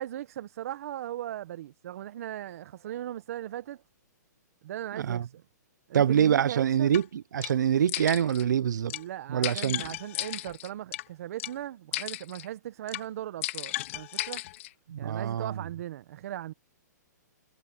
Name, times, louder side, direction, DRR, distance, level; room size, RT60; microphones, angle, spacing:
voice 1, 0.0-3.8 4.6-5.3 5.9-6.9 8.9-14.4 15.0-16.5, right 12 dB, 50° right, 1.2 m, -38 dB
voice 2, 4.9-5.3 5.9-8.9 9.3-9.8 14.9-15.6, right 9 dB, 75° right, 0.5 m, -25 dB
sound 1, 6.9-7.0 7.4-7.5 7.9-8.4 8.9-9.0 9.4-11.0 11.4-11.5 11.9-12.5 12.9-13.0 13.4-14.7, left 16 dB, 45° left, 1.7 m, -35 dB
hypercardioid pair, 150°, 10 cm